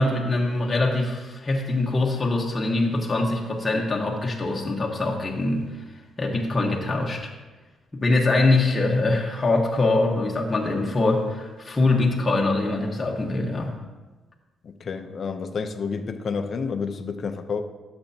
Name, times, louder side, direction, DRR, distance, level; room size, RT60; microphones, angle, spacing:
voice 1, 0.0-5.7 6.2-7.3 7.9-13.7, left 2 dB, 25° left, -2 dB, 1.3 m, -23 dB
voice 2, 14.6-17.6, left 5 dB, 50° left, 8 dB, 0.7 m, -30 dB
12.0 x 7.1 x 2.8 m, 1.2 s
cardioid pair, 90°, 0 cm